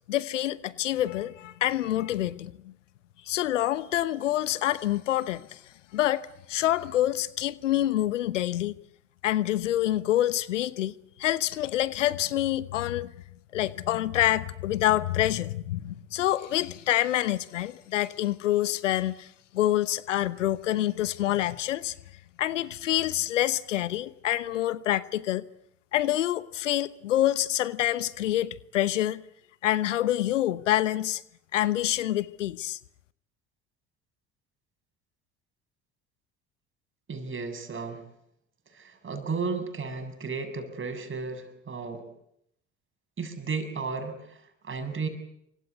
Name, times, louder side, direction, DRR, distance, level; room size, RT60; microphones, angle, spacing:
voice 1, 0.1-2.7 3.3-5.6 5.9-8.7 9.2-10.9 11.2-13.1 13.5-19.3 19.5-21.9 22.4-25.4 25.9-29.2 29.6-31.2 31.5-32.8, left 13 dB, 80° left, 1.0 m, -27 dB
voice 2, 37.1-38.0 38.7-42.0 43.2-45.1, right 4 dB, 35° right, 7.4 m, -34 dB
28.0 x 25.5 x 8.4 m
figure-of-eight pair, 60°, 37 cm